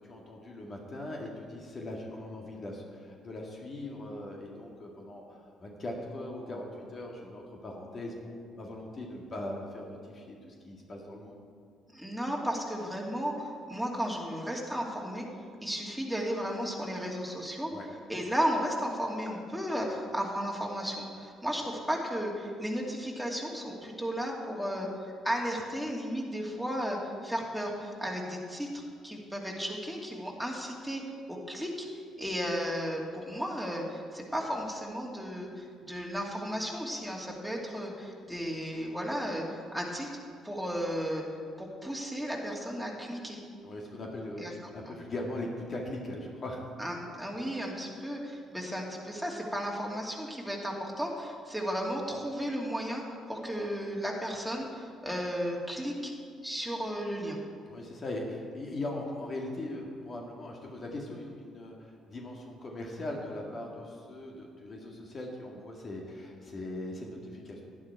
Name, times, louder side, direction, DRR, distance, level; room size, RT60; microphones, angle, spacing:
voice 1, 0.0-11.4 17.7-17.8 43.6-44.5 44.7-46.6 57.7-67.6, left 1 dB, 45° left, -1 dB, 2.1 m, -40 dB
voice 2, 11.9-15.3 15.6-17.7 18.1-31.0 31.3-40.1 40.4-41.2 41.6-43.4 44.4-44.5 44.9-45.0 46.8-53.0 53.3-56.1 56.4-57.4, equal, ahead, -2 dB, 2.7 m, -34 dB
11.0 x 10.5 x 4.7 m, 2.2 s
hypercardioid pair, 50°, 0 cm